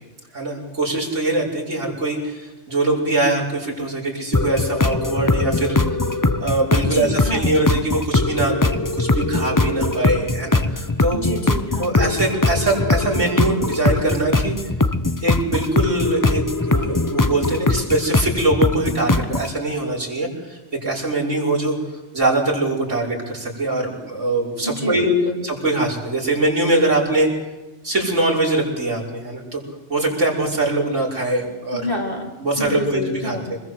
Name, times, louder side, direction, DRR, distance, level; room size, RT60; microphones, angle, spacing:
voice 1, 0.3-6.0 6.4-11.2 11.8-14.6 15.2-21.8 22.1-25.1 25.4-27.3 27.8-29.6 29.9-31.9 32.4-33.6, right 2 dB, 85° right, -2 dB, 6.2 m, -22 dB
sound 1, 4.3-19.5, left 2 dB, 20° left, 0.8 m, -21 dB
voice 2, 6.9-7.5 11.1-12.1 24.6-25.4 31.8-32.3 32.6-33.5, left 1 dB, 45° left, 1 dB, 4.1 m, -26 dB
26.0 x 21.5 x 7.9 m, 1.1 s
omnidirectional pair, 1.2 m